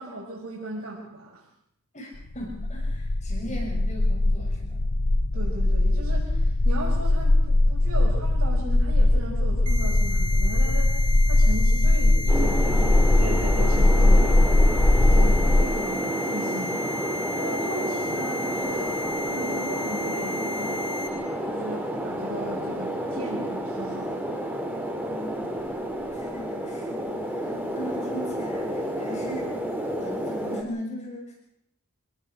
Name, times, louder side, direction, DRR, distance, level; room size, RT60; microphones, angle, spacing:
voice 1, 0.0-1.4 5.3-14.6 15.1-16.8 17.3-20.9 21.4-24.4, right 1 dB, 70° right, -2 dB, 6.3 m, -37 dB
voice 2, 1.9-4.8 25.0-25.6 26.1-29.6 30.0-31.3, equal, 30° left, -1 dB, 6.5 m, -38 dB
sound 1, 2.3-15.7, left 2 dB, 75° left, 1.0 m, -20 dB
sound 2, 9.7-21.1, left 2 dB, 25° right, 7.1 m, -34 dB
sound 3, 12.3-30.6, equal, 10° right, 3.8 m, -30 dB
27.0 x 19.5 x 6.5 m, 0.75 s
head